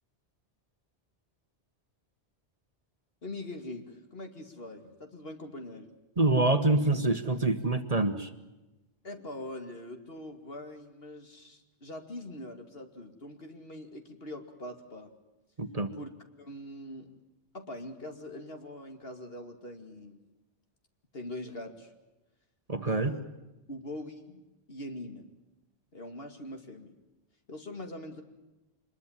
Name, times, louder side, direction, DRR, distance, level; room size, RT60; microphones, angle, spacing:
voice 1, 3.2-5.9 9.0-15.1 15.9-16.1 16.4-17.1 17.5-20.2 21.1-21.9 22.8-23.2 23.7-24.4 24.7-25.3 25.9-26.9 27.5-28.2, left 1 dB, 60° left, 5 dB, 2.8 m, -43 dB
voice 2, 6.2-8.3 15.6-15.9 22.7-23.1, right 2 dB, 35° right, 8 dB, 1.4 m, -26 dB
25.5 x 21.5 x 7.4 m, 1.0 s
omnidirectional pair, 1.2 m